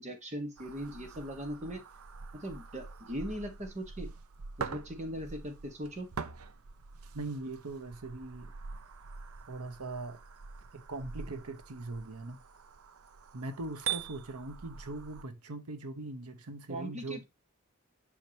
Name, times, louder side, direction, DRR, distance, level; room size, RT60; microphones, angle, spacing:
voice 1, 0.0-1.8 2.4-4.1 4.6-6.1 16.7-17.2, equal, 30° right, 1.3 m, -39 dB
sound 1, 0.6-15.2, right 6 dB, 70° right, 0.6 m, -44 dB
voice 2, 7.1-8.5 9.5-10.2 10.7-12.4 13.3-17.2, right 2 dB, 90° right, 1.0 m, -41 dB
7.6 x 5.8 x 2.8 m
head